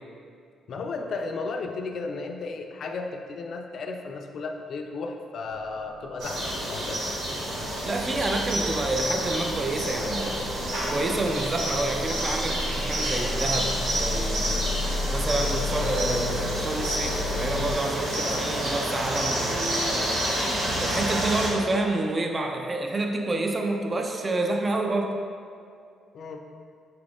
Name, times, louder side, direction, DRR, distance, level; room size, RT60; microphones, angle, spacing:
voice 1, 0.7-7.0 26.1-26.4, left 3 dB, 60° left, 4 dB, 0.4 m, -34 dB
sound 1, 5.5-17.7, left 3 dB, 55° right, 0.7 m, -35 dB
sound 2, 6.2-21.5, right 1 dB, 85° right, 1.3 m, -29 dB
voice 2, 7.8-10.4 10.9-14.6 15.1-20.2 20.8-25.2, right 2 dB, 30° right, 2 dB, 0.4 m, -28 dB
5.8 x 2.5 x 3.5 m, 2.3 s
cardioid pair, 90°, 0 cm